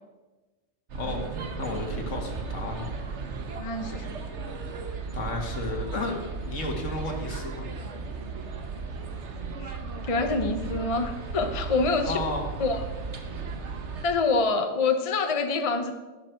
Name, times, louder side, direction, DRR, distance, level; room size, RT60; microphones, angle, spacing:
voice 1, 0.9-3.0 5.1-7.7 12.0-12.4, left 2 dB, 65° left, 3 dB, 2.1 m, -33 dB
sound 1, 0.9-14.1, right 4 dB, 60° right, 1.4 m, -35 dB
voice 2, 3.6-4.1 9.6-9.8 10.0-12.2 12.6-12.8 14.0-15.9, left 3 dB, 30° left, 6 dB, 0.8 m, -26 dB
12.5 x 11.0 x 4.5 m, 1.2 s
omnidirectional pair, 1.4 m